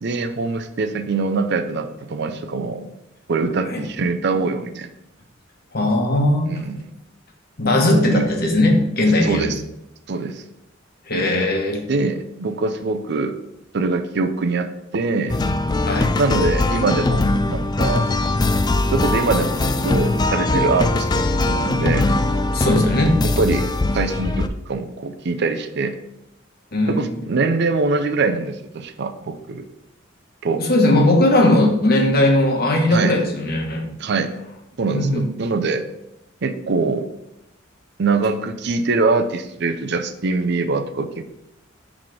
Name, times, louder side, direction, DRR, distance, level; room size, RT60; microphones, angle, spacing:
voice 1, 0.0-2.9 3.3-4.9 6.5-6.8 7.9-8.3 9.2-9.6 10.1-10.4 11.9-13.3 13.7-14.7 14.9-15.4 16.1-18.1 18.9-22.0 23.2-23.7 23.9-26.0 26.9-29.7 30.4-30.6 32.9-33.2 34.0-34.3 34.8-35.9 36.4-37.1 38.0-41.3, right 3 dB, 55° right, 8 dB, 0.5 m, -23 dB
voice 2, 5.7-6.5 7.6-9.5 11.1-11.8 15.8-16.1 22.5-23.3 26.7-27.0 30.6-33.8 34.9-35.3, left 1 dB, 50° left, 2 dB, 1.2 m, -18 dB
sound 1, 15.3-24.5, left 2 dB, 20° left, 0.3 m, -21 dB
6.0 x 4.1 x 4.9 m, 0.85 s
head